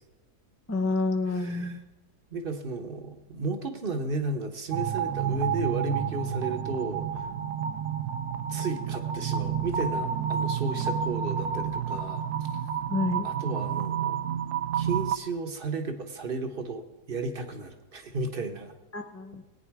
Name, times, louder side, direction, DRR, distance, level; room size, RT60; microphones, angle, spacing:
voice 1, 0.7-1.8 12.9-13.3 18.9-19.4, left 3 dB, 20° left, 5 dB, 0.3 m, -28 dB
voice 2, 1.3-1.8 2.3-7.3 8.5-12.2 13.2-14.2 14.7-18.7, right 3 dB, 40° right, 6 dB, 1.1 m, -33 dB
sound 1, 4.7-15.2, right 8 dB, 75° right, 1.1 m, -30 dB
18.5 x 9.3 x 4.7 m, 1.1 s
omnidirectional pair, 1.8 m